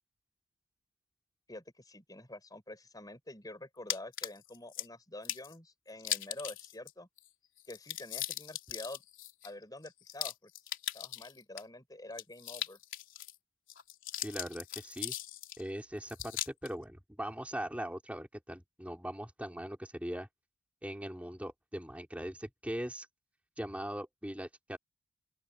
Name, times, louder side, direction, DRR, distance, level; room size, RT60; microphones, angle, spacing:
voice 1, 1.5-7.1 7.7-9.0 9.4-10.5 10.9-12.8, left 1 dB, 15° left, 6.8 m, -47 dB
sound 1, 3.9-4.9 5.2-5.5 6.0-6.9 7.2-7.3 7.6-11.6 12.1-13.3 13.7-15.6 16.1-16.7, left 12 dB, 60° left, 4.0 m, -39 dB
voice 2, 14.2-15.1 15.6-20.3 20.8-23.1 23.6-24.8, equal, 5° right, 4.1 m, -40 dB
open air
head